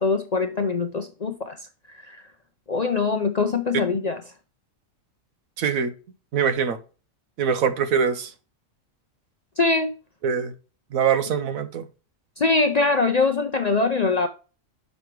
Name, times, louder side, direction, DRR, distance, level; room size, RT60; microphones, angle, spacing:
voice 1, 0.0-1.6 2.1-2.2 2.7-4.2 9.6-9.9 12.4-14.3, left 3 dB, 45° left, 0.5 m, -22 dB
voice 2, 5.6-5.9 6.3-6.8 7.4-8.3 10.2-10.5 10.9-11.9, right 7 dB, 80° right, 1.3 m, -23 dB
6.2 x 5.6 x 4.5 m
omnidirectional pair, 1.4 m